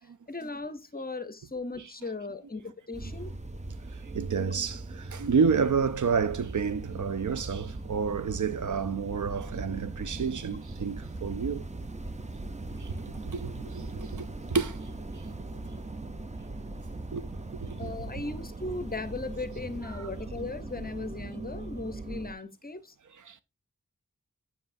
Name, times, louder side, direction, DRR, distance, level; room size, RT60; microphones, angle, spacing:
voice 1, 0.3-3.3 17.8-22.9, left 3 dB, 30° left, 0.6 m, -37 dB
sound 1, 2.9-22.3, right 2 dB, 20° right, 0.6 m, -40 dB
voice 2, 3.9-11.7 12.3-12.4 12.8-13.0 13.2-14.8 15.1-15.2 17.1-17.9 19.9-20.1 23.1-23.4, right 6 dB, 70° right, 0.5 m, -30 dB
7.5 x 6.1 x 2.5 m
wide cardioid pair, 60°, 32 cm